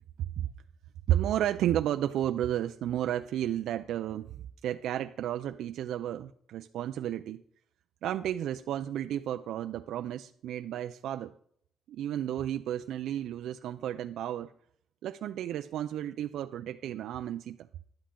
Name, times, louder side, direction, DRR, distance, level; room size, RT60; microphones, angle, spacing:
voice 1, 1.1-4.4 4.6-7.4 8.0-11.3 11.9-14.5 15.0-17.7, right 11 dB, 80° right, 0.4 m, -32 dB
11.5 x 10.5 x 3.7 m
cardioid pair, 125°, 0 cm